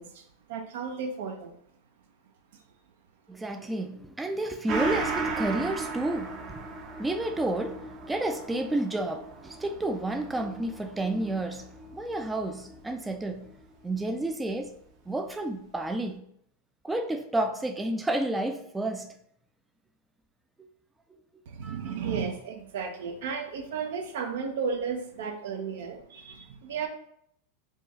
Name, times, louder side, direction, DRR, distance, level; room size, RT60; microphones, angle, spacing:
voice 1, 0.0-1.5 2.5-2.6 21.5-26.9, right 6 dB, 75° right, 0.7 m, -34 dB
voice 2, 3.3-11.7 11.9-13.5 13.8-14.7 15.1-16.3 16.8-19.1 20.6-20.7 21.6-21.9, right 2 dB, 10° right, 0.3 m, -31 dB
Gong, 4.7-13.6 14.0-14.1, right 3 dB, 40° right, 0.7 m, -36 dB
4.5 x 2.3 x 3.1 m
supercardioid pair, 130°, 0 cm